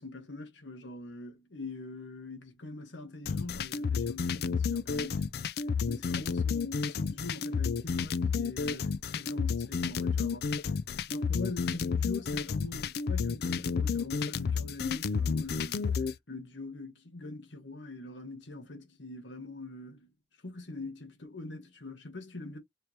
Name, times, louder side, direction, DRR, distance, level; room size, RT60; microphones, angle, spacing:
voice 1, 0.0-5.4 5.9-10.5 11.1-20.1 20.4-22.6, left 2 dB, 85° left, 1.3 m, -43 dB
sound 1, 3.2-16.1, left 5 dB, 60° left, 0.3 m, -31 dB
4.5 x 3.2 x 2.7 m
head